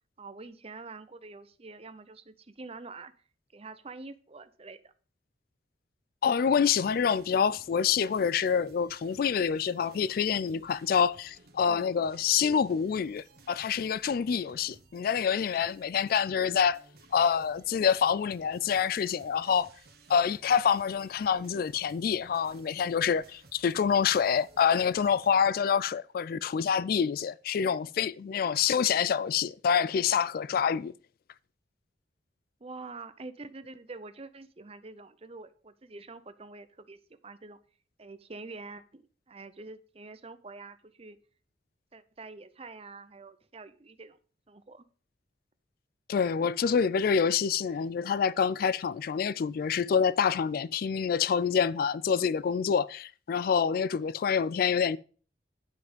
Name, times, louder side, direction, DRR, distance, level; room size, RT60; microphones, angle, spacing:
voice 1, 0.2-3.1 3.5-4.9 11.7-11.9 32.6-37.0 37.2-37.6 38.0-41.2 41.9-44.2 44.5-44.8, right 3 dB, 35° right, 0.7 m, -46 dB
voice 2, 6.2-16.8 17.1-19.7 20.1-30.9 46.1-55.0, left 7 dB, 55° left, 0.3 m, -27 dB
sound 1, 6.6-25.5, right 3 dB, 60° right, 1.5 m, -57 dB
10.5 x 5.9 x 5.1 m
head